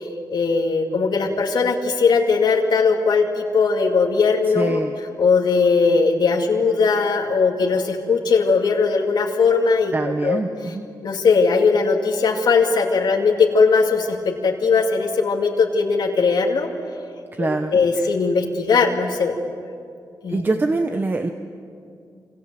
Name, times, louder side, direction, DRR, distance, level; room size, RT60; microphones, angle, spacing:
voice 1, 0.3-4.8 5.2-9.9 10.2-10.4 11.0-14.2 14.4-16.7 17.4-19.3 20.2-20.4, left 4 dB, 80° left, 0 dB, 2.5 m, -19 dB
voice 2, 4.5-5.0 9.9-10.8 17.3-18.1 20.3-21.3, right 3 dB, 25° right, 6 dB, 1.1 m, -24 dB
27.5 x 27.0 x 7.7 m, 2.4 s
wide cardioid pair, 140°, 7 cm